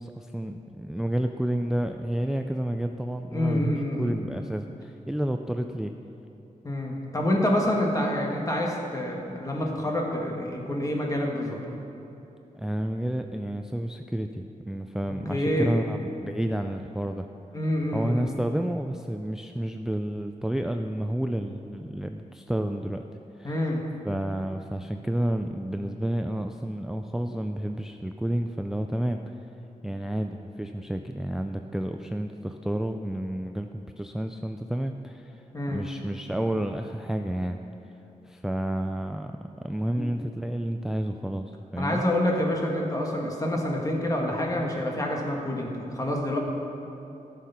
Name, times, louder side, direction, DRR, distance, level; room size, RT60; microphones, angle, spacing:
voice 1, 0.0-5.9 12.5-17.3 17.9-23.0 23.4-23.6 24.1-29.2 29.8-35.4 35.7-37.6 38.3-39.3 39.6-42.0, right 1 dB, 5° right, 5 dB, 0.3 m, -30 dB
voice 2, 3.3-4.2 6.6-11.6 15.3-15.8 17.5-18.3 23.4-23.8 35.5-35.8 40.0-40.1 41.8-46.4, left 1 dB, 25° left, -1 dB, 1.6 m, -27 dB
13.5 x 6.5 x 5.7 m, 3.0 s
wide cardioid pair, 130°, 14 cm